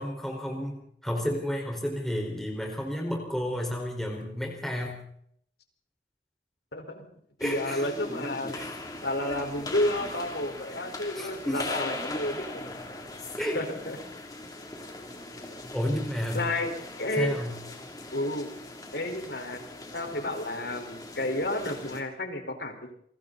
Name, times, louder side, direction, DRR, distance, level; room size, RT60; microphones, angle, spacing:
voice 1, 0.0-5.0 7.4-7.9 8.5-8.7 11.1-11.8 13.4-13.6 15.7-16.5 17.2-17.6, equal, ahead, -1 dB, 4.8 m, -31 dB
voice 2, 6.7-7.1 7.4-8.7 9.0-12.6 13.5-14.0 16.3-16.7 17.0-17.4 18.1-18.5 18.9-19.6 19.9-22.9, left 1 dB, 75° left, 5 dB, 4.7 m, -31 dB
sound 1, 7.4-22.0, left 2 dB, 20° left, 3.1 m, -40 dB
29.0 x 23.5 x 4.2 m, 0.68 s
head